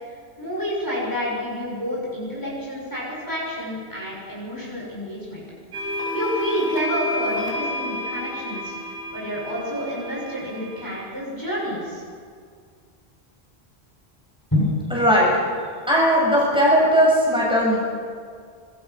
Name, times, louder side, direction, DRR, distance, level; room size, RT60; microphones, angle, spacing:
voice 1, 0.4-5.4 5.9-8.8 9.1-12.0 14.5-14.7, equal, 20° left, -5 dB, 6.9 m, -28 dB
sound 1, 5.7-11.0, left 1 dB, 60° right, 5.8 m, -30 dB
voice 2, 14.9-15.3 15.9-17.8, equal, 5° right, -5 dB, 7.2 m, -18 dB
26.0 x 21.5 x 6.2 m, 2.1 s
omnidirectional pair, 1.1 m